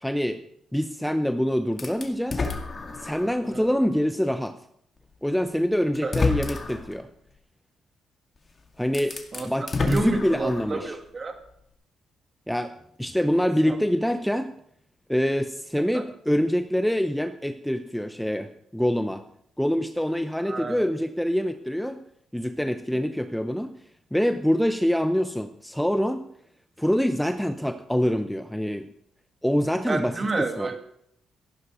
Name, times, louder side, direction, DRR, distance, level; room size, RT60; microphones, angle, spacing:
voice 1, 0.0-0.4 0.7-2.5 2.9-4.6 5.2-7.1 8.8-9.2 9.4-10.9 12.5-14.5 15.1-19.2 19.6-22.0 22.3-23.7 24.1-26.2 26.8-28.9 29.4-30.7, equal, ahead, 9 dB, 0.7 m, -25 dB
sound 1, 1.8-3.4 4.0-4.1 5.3-5.4 5.9-6.9 8.4-8.5 8.8-10.8, left 4 dB, 30° left, 2.2 m, -29 dB
voice 2, 9.8-11.4 13.7-13.8 15.9-16.0 20.4-20.9 29.9-30.8, right 3 dB, 35° right, 5 dB, 2.5 m, -30 dB
14.5 x 11.5 x 5.1 m, 0.72 s
cardioid pair, 90°, 0 cm